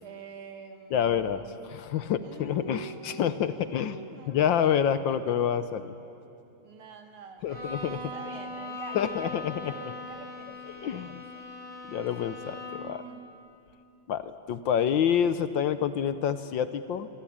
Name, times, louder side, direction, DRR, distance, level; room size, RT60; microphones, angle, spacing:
voice 1, 0.0-1.6 2.2-4.5 6.6-11.5 12.9-13.2, right 5 dB, 75° right, 6 dB, 2.6 m, -46 dB
voice 2, 0.9-4.0 4.3-5.9 7.4-8.1 8.9-9.5 10.8-11.2 11.9-13.0 14.1-17.1, left 9 dB, 70° left, 12 dB, 1.4 m, -28 dB
Bowed string instrument, 7.5-13.0, left 2 dB, 40° left, 5.5 m, -40 dB
26.0 x 23.5 x 8.7 m, 2.7 s
omnidirectional pair, 2.4 m